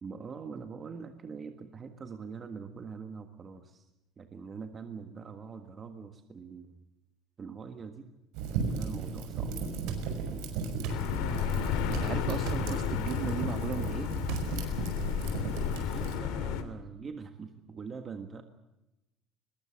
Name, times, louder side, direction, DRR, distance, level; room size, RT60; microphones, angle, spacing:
voice 1, 0.0-3.9 4.2-6.8 7.4-8.1 8.8-9.6 15.5-18.4, right 5 dB, 25° right, 6 dB, 1.6 m, -43 dB
Fire, 8.3-16.1, right 5 dB, 85° right, 6.1 m, -36 dB
sound 1, 9.9-10.0 10.8-11.1 11.9-12.1 12.5-12.7 14.2-14.5, right 6 dB, 70° right, 4.8 m, -35 dB
sound 2, 10.9-16.6, left 8 dB, 85° left, 2.7 m, -32 dB
voice 2, 11.3-14.1, right 7 dB, 40° right, 9 dB, 1.9 m, -37 dB
22.0 x 21.5 x 7.6 m, 0.94 s
cardioid pair, 175°, 0 cm